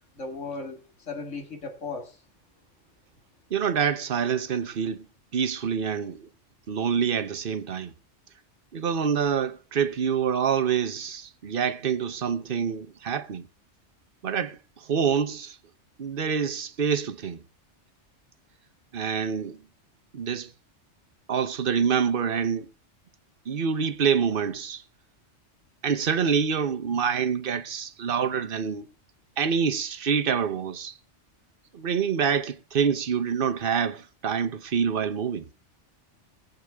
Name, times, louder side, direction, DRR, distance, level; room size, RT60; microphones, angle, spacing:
voice 1, 0.2-2.2, left 3 dB, 85° left, 2.3 m, -36 dB
voice 2, 3.5-5.0 5.3-6.3 6.7-7.9 8.7-13.5 14.2-14.6 14.9-15.6 16.0-17.4 18.9-19.6 20.1-20.5 21.3-22.7 23.5-24.8 25.8-28.9 29.4-30.9 31.7-35.5, right 7 dB, 50° right, 1.0 m, -26 dB
22.5 x 8.1 x 3.5 m
omnidirectional pair, 1.2 m